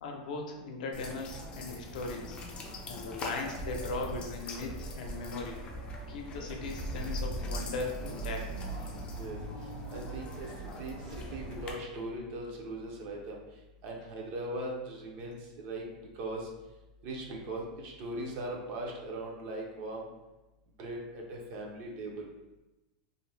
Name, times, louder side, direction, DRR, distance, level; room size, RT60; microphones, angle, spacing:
voice 1, 0.0-2.4 2.9-5.6 6.1-8.5, left 3 dB, 85° left, 2 dB, 0.6 m, -38 dB
sound 1, 0.9-11.7, equal, 25° left, 0.4 m, -40 dB
sound 2, 1.9-11.7, right 1 dB, 65° right, 1.0 m, -50 dB
voice 2, 9.9-13.4 13.8-15.8 16.1-16.5 17.0-20.1 20.8-22.3, right 1 dB, 40° right, 0 dB, 0.5 m, -39 dB
2.5 x 2.1 x 3.2 m, 1.0 s
supercardioid pair, 160°, 4 cm